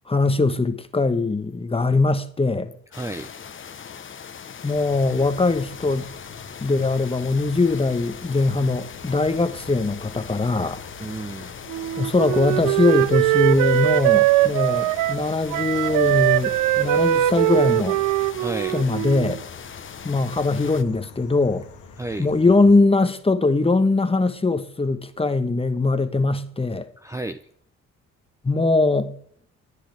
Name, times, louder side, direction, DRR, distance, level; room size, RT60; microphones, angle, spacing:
voice 1, 0.1-2.7 4.6-6.1 6.6-10.8 12.0-18.0 18.7-19.4 20.0-21.6 22.2-26.9 28.4-29.1, left 3 dB, 20° left, 1.2 m, -21 dB
sound 1, 2.9-20.8, left 7 dB, 40° left, 1.1 m, -40 dB
voice 2, 2.9-3.3 11.0-11.6 18.4-18.8 22.0-22.3 27.0-27.4, right 2 dB, 10° right, 0.6 m, -32 dB
sound 2, 4.7-22.8, left 4 dB, 90° left, 2.6 m, -45 dB
Wind instrument woodwind instrument, 11.7-15.3 15.5-19.4, right 15 dB, 85° right, 0.5 m, -21 dB
24.5 x 9.9 x 3.5 m
cardioid pair, 90°, 30 cm